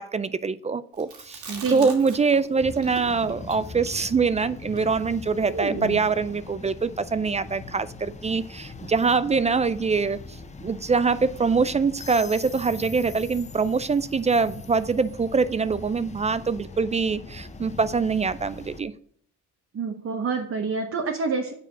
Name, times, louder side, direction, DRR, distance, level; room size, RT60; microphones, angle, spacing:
voice 1, 0.0-1.4 1.7-10.2 10.6-18.9, right 4 dB, 25° right, 16 dB, 0.3 m, -24 dB
Chewing mastication, 1.0-2.5 2.7-6.1, right 3 dB, 85° right, 2.3 m, -37 dB
voice 2, 1.5-1.9 19.7-21.5, right 4 dB, 50° right, 2 dB, 1.1 m, -27 dB
sound 1, 2.6-18.8, left 3 dB, 25° left, 0.7 m, -41 dB
6.9 x 4.9 x 6.9 m, 0.62 s
cardioid pair, 90°, 30 cm